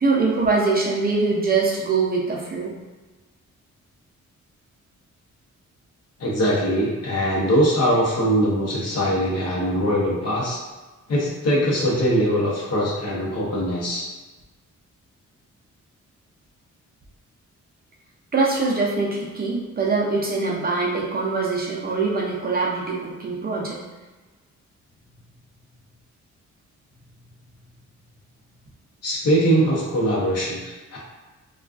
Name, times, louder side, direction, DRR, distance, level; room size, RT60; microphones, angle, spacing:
voice 1, 0.0-2.7 18.3-23.8, right 3 dB, 30° right, -3 dB, 0.5 m, -23 dB
voice 2, 6.2-10.6 11.1-14.1 29.0-31.0, equal, 55° left, -4 dB, 0.8 m, -22 dB
2.4 x 2.3 x 2.3 m, 1.2 s
cardioid pair, 105°, 30 cm